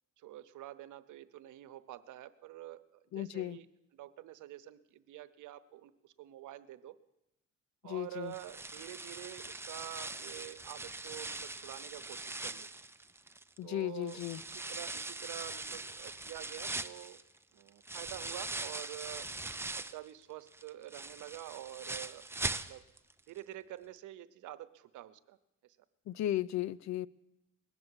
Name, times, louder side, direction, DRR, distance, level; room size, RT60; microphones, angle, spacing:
voice 1, 0.2-3.7 3.9-7.0 7.8-12.7 13.6-17.2 17.5-19.3 19.8-22.3 22.5-22.8 23.3-25.4 25.6-25.8, right 13 dB, 80° right, 12 dB, 0.9 m, -47 dB
voice 2, 3.1-3.6 7.8-8.3 13.6-14.4 26.1-27.1, left 13 dB, 65° left, 20 dB, 0.6 m, -35 dB
sound 1, 8.3-13.6 14.1-20.1 20.5-23.1 23.4-23.5 24.0-24.1, right 2 dB, 10° right, 0.6 m, -41 dB
20.0 x 7.1 x 9.8 m, 0.92 s
cardioid pair, 90°, 30 cm